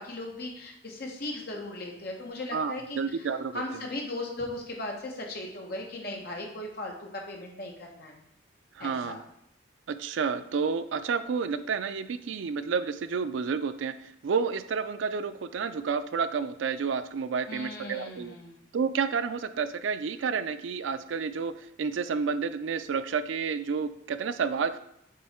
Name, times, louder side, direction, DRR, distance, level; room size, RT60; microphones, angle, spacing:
voice 1, 0.0-3.3 3.5-8.2 8.8-9.2 17.5-18.6, left 1 dB, 50° left, 0 dB, 1.2 m, -37 dB
voice 2, 2.5-3.6 8.8-9.2 9.9-18.4 18.7-24.8, right 5 dB, 80° right, 12 dB, 0.4 m, -30 dB
7.5 x 3.1 x 4.3 m, 0.76 s
head